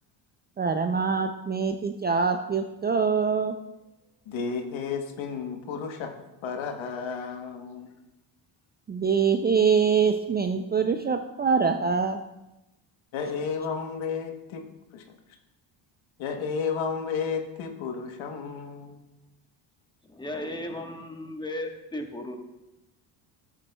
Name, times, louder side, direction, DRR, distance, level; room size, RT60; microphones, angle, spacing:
voice 1, 0.6-3.5 8.9-12.2, right 5 dB, 25° right, 6 dB, 0.3 m, -24 dB
voice 2, 4.3-6.1 6.4-7.9 13.1-14.6 14.9-15.0 16.2-19.0, left 5 dB, 70° left, 5 dB, 1.2 m, -32 dB
voice 3, 20.0-22.4, left 1 dB, 10° left, 3 dB, 1.2 m, -35 dB
13.0 x 7.5 x 2.2 m, 0.97 s
cardioid pair, 85°, 49 cm